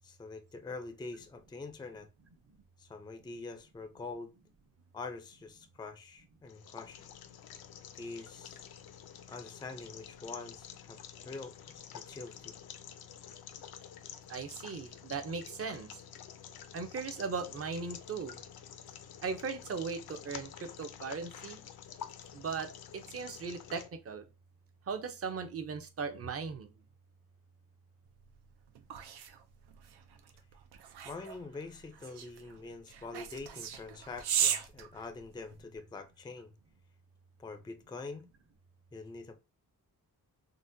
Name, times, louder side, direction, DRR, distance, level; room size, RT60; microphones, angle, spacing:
voice 1, 0.0-2.1 2.8-4.3 4.9-7.0 8.0-8.7 9.3-11.0 11.2-11.5 11.9-12.5 31.0-36.5 37.4-38.3 38.9-39.3, left 3 dB, 10° left, 0.4 m, -45 dB
sound 1, 6.4-23.9, left 9 dB, 70° left, 0.5 m, -49 dB
voice 2, 14.3-15.9 16.7-18.4 19.2-21.6 22.3-24.3 24.9-26.7, right 5 dB, 40° right, 0.6 m, -38 dB
sound 2, 28.2-35.7, right 8 dB, 90° right, 0.5 m, -37 dB
4.0 x 2.1 x 2.5 m
cardioid pair, 80°, 38 cm